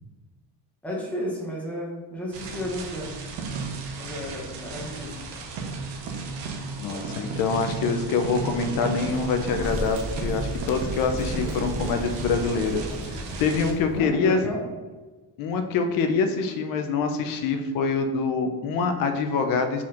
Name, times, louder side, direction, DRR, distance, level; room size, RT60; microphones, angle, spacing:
voice 1, 0.8-3.2 4.0-5.2 13.9-14.6, equal, 5° left, -4 dB, 0.6 m, -33 dB
sound 1, 2.3-13.7, right 4 dB, 75° right, 0.8 m, -34 dB
voice 2, 6.8-12.8 13.4-14.4 15.4-19.8, left 5 dB, 55° left, 6 dB, 0.5 m, -25 dB
Sliding door, 9.1-14.1, right 1 dB, 10° right, 1.1 m, -34 dB
4.2 x 4.2 x 2.5 m, 1.3 s
cardioid pair, 175°, 43 cm